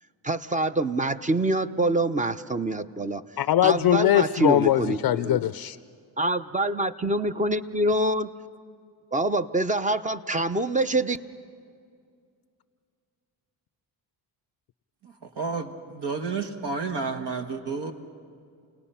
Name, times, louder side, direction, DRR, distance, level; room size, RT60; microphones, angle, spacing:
voice 1, 0.2-3.2 3.6-5.4 6.2-8.3 9.1-11.2, right 1 dB, 15° right, 11 dB, 0.7 m, -25 dB
voice 2, 3.4-5.8, left 12 dB, 50° left, 15 dB, 0.5 m, -21 dB
voice 3, 15.0-17.9, right 4 dB, 65° right, 5 dB, 1.6 m, -31 dB
29.5 x 18.5 x 5.7 m, 2.3 s
supercardioid pair, 65°, 45 cm